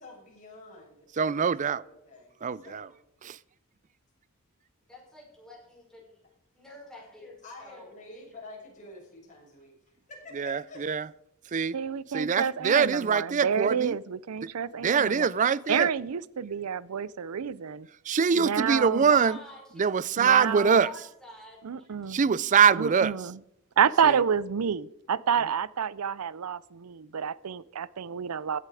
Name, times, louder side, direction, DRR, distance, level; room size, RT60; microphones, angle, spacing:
voice 1, 0.0-2.9 7.4-10.8, left 2 dB, 35° left, 6.5 m, -48 dB
voice 2, 1.2-1.8 2.4-2.9 3.2-3.4 10.3-11.1 11.5-11.7 12.1-14.0 14.4-14.5 14.8-15.9 18.1-19.4 19.8-20.9 22.1-23.1 24.0-24.2, right 6 dB, 35° right, 0.4 m, -24 dB
voice 3, 4.9-6.2 6.6-7.9 19.1-19.9 20.3-21.9, left 2 dB, 5° left, 5.8 m, -47 dB
voice 4, 11.7-15.3 15.7-17.8 18.3-19.1 20.2-20.9 21.6-22.2 22.8-23.4 23.8-28.6, right 7 dB, 90° right, 0.5 m, -29 dB
16.0 x 11.0 x 4.9 m
head